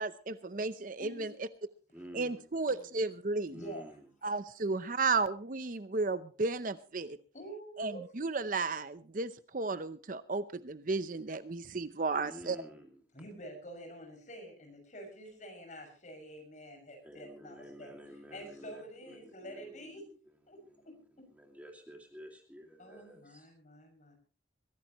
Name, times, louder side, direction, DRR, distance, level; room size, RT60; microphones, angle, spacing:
voice 1, 0.0-1.5 2.1-3.6 4.2-7.2 7.8-12.6, right 3 dB, 45° right, 0.7 m, -34 dB
voice 2, 1.9-2.5 3.5-4.1 12.2-13.0 17.1-20.0 21.4-23.5, equal, 10° right, 2.4 m, -50 dB
voice 3, 3.5-3.9 7.3-8.0 13.1-17.9 18.3-20.0 20.5-20.6 20.8-20.9 22.8-24.2, right 1 dB, 40° left, 6.5 m, -48 dB
22.0 x 16.0 x 3.0 m
head